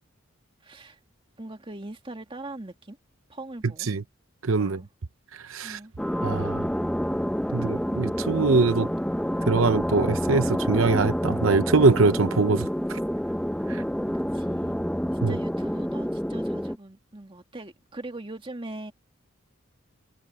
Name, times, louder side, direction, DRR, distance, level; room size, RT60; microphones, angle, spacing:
voice 1, 0.6-1.0 1.4-3.0 3.3-3.9 4.6-4.9 5.6-5.9 14.0-14.1 14.3-14.8 15.3-18.9, right 2 dB, 25° right, 2.2 m, -41 dB
voice 2, 4.4-4.8 5.5-5.8 6.2-6.7 7.5-8.9 9.5-13.0 13.7-13.8 15.2-15.4, right 3 dB, 80° right, 0.8 m, -23 dB
sound 1, 6.0-16.8, equal, 5° left, 0.7 m, -28 dB
head